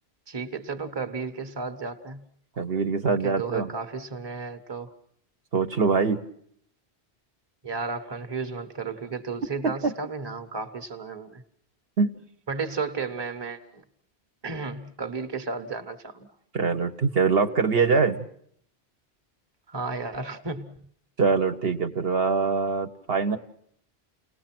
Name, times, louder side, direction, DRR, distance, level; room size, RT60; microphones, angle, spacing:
voice 1, 0.3-2.3 3.0-4.9 7.6-11.4 12.5-13.8 14.4-16.3 19.7-20.8, right 4 dB, 25° right, 1.1 m, -33 dB
voice 2, 2.6-3.7 5.5-6.2 9.6-9.9 12.0-12.1 16.5-18.2 21.2-23.4, right 5 dB, 65° right, 1.3 m, -23 dB
30.0 x 19.0 x 6.0 m
omnidirectional pair, 1.1 m